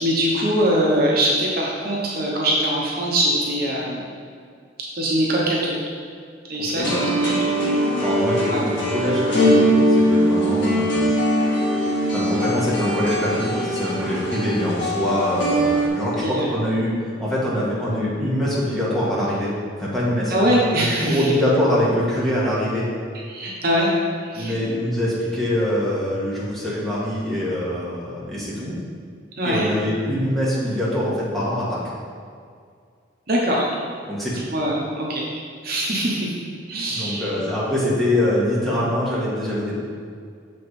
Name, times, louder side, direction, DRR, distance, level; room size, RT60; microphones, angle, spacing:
voice 1, 0.0-4.1 4.9-5.8 6.4-7.4 8.5-8.6 16.2-16.5 20.3-21.3 23.3-23.9 24.2-24.5 29.4-29.7 33.3-33.7 34.5-35.3 35.6-36.3 36.7-37.3, right 1 dB, 50° right, -4 dB, 1.0 m, -22 dB
sound 1, 6.8-15.9, equal, 65° left, 1.5 m, -21 dB
voice 2, 8.0-11.0 12.1-16.9 17.2-19.5 19.8-22.8 24.3-28.8 29.4-31.8 34.1-34.5 36.9-39.8, left 1 dB, ahead, -9 dB, 1.7 m, -24 dB
6.6 x 5.1 x 4.2 m, 2.2 s
head